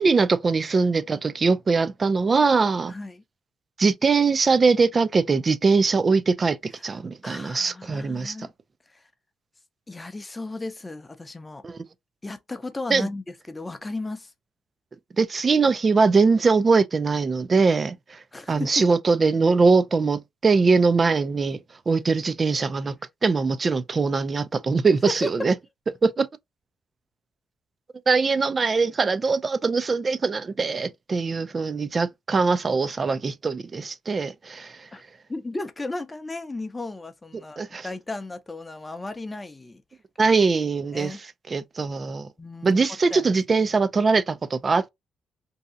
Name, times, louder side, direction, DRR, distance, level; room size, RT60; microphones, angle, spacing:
voice 1, 0.0-2.9 3.8-8.5 11.6-11.8 12.9-13.1 15.2-18.2 18.5-21.6 21.9-22.9 23.2-25.5 26.0-26.3 28.1-34.9 37.6-37.9 40.2-41.2 41.5-42.3 42.6-44.9, right 4 dB, 35° right, 0.4 m, -22 dB
voice 2, 2.9-3.2 6.8-6.9 7.2-8.5 8.9-9.0 9.9-11.6 12.2-14.3 18.3-18.9 25.1-25.3 34.9-35.0 35.3-39.8 40.2-40.4 40.9-41.2 42.4-43.3, left 2 dB, 20° left, 0.6 m, -35 dB
2.7 x 2.3 x 3.7 m
cardioid pair, 90°, 0 cm